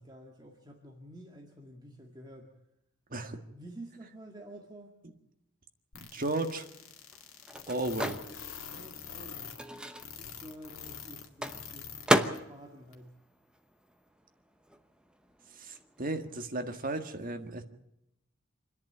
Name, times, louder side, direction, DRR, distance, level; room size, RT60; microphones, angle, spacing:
voice 1, 0.0-2.5 3.5-5.0 8.7-9.6 10.2-11.9 12.4-13.1, right 1 dB, 20° right, 1 dB, 2.0 m, -50 dB
sound 1, 5.9-12.1 12.3-12.4 12.9-13.0, left 8 dB, 85° left, 2.1 m, -44 dB
Microwave oven, 6.1-14.3 14.5-16.4, equal, 5° right, 0.9 m, -35 dB
voice 2, 6.1-6.7 7.7-8.2 15.6-17.6, right 2 dB, 40° right, 6 dB, 1.8 m, -34 dB
26.5 x 10.5 x 9.1 m, 0.85 s
head